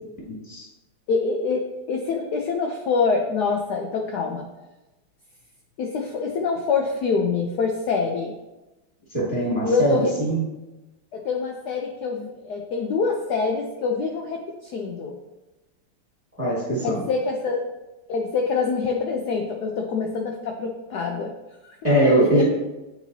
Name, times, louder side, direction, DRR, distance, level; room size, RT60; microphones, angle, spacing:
voice 1, 1.1-4.5 5.8-8.3 9.6-10.1 11.1-15.2 16.8-17.6 18.1-21.3 21.6-21.8 22.0-22.4, left 4 dB, 80° left, 2 dB, 0.9 m, -25 dB
voice 2, 9.1-10.4 16.4-17.0 21.8-22.4, right 1 dB, 5° right, -6 dB, 1.6 m, -21 dB
8.9 x 4.0 x 2.7 m, 1.0 s
omnidirectional pair, 2.4 m